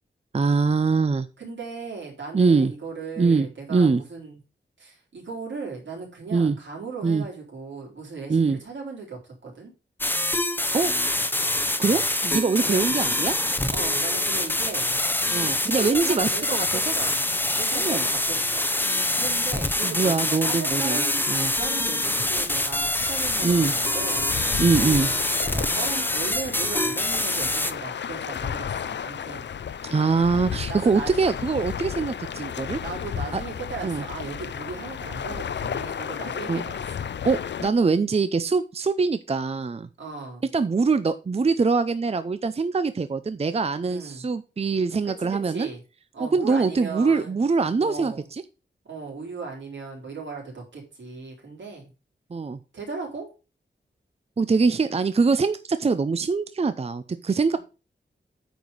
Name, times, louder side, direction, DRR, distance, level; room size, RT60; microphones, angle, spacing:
voice 1, 0.3-1.3 2.3-2.7 3.2-4.0 6.3-6.6 7.0-7.2 8.3-8.6 10.7-10.9 11.8-13.3 15.3-16.7 17.7-18.0 19.8-21.0 21.3-21.5 23.4-23.7 24.6-25.1 29.8-32.8 33.3-33.4 33.8-34.0 36.5-36.6 37.3-39.9 40.5-45.7 46.2-48.1 52.3-52.6 54.4-57.6, right 4 dB, 35° right, 12 dB, 0.5 m, -23 dB
voice 2, 1.4-4.4 4.8-9.7 12.6-13.0 13.7-15.0 15.4-17.2 17.5-18.7 19.1-21.2 21.6-24.3 25.5-29.5 30.7-31.1 32.8-37.1 40.0-40.5 43.9-44.3 45.0-45.8 46.1-47.3 47.8-48.3 48.8-51.9 52.7-53.3 57.5-57.6, right 4 dB, 80° right, -1 dB, 4.0 m, -37 dB
sound 1, 10.0-27.7, left 1 dB, 10° left, 0.7 m, -25 dB
sound 2, 21.9-37.7, left 8 dB, 70° left, 0.5 m, -34 dB
9.1 x 4.9 x 5.3 m, 0.31 s
wide cardioid pair, 130°, 19 cm